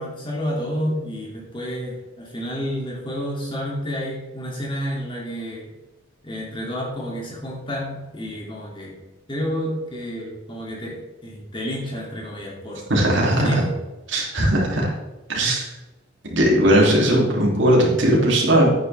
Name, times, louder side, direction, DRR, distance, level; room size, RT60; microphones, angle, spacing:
voice 1, 0.0-5.7 6.2-8.9 9.3-12.8 13.2-13.7, equal, 25° left, -2 dB, 2.6 m, -30 dB
voice 2, 12.9-13.6 14.1-14.9 15.3-15.6 16.2-18.7, right 1 dB, 65° right, -2 dB, 3.0 m, -18 dB
10.0 x 9.3 x 3.5 m, 1.1 s
head